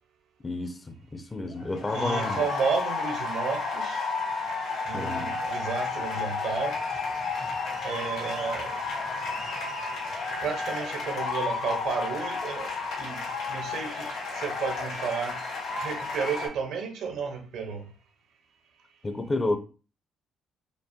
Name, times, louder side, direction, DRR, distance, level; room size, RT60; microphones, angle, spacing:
voice 1, 0.4-2.4 4.9-5.4 19.0-19.6, left 2 dB, 20° left, 0.5 m, -31 dB
sound 1, 1.5-16.5, left 4 dB, 80° left, 1.7 m, -32 dB
voice 2, 1.9-4.1 4.8-6.8 7.8-8.8 9.5-9.6 10.4-14.1 14.4-15.4 15.8-17.8, right 5 dB, 75° right, 0.8 m, -32 dB
5.2 x 2.0 x 2.7 m
cardioid pair, 95°, 0 cm